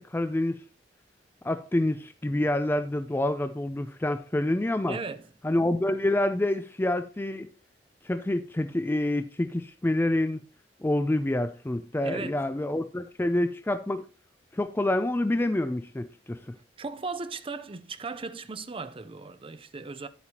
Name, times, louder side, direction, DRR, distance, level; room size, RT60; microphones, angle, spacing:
voice 1, 0.1-0.6 1.4-5.0 5.4-7.5 8.0-10.4 10.8-14.0 14.5-16.4, left 1 dB, 15° left, 0.4 m, -27 dB
voice 2, 4.9-5.3 12.0-12.4 16.8-20.1, right 4 dB, 30° right, 0.6 m, -37 dB
10.5 x 8.2 x 2.9 m
head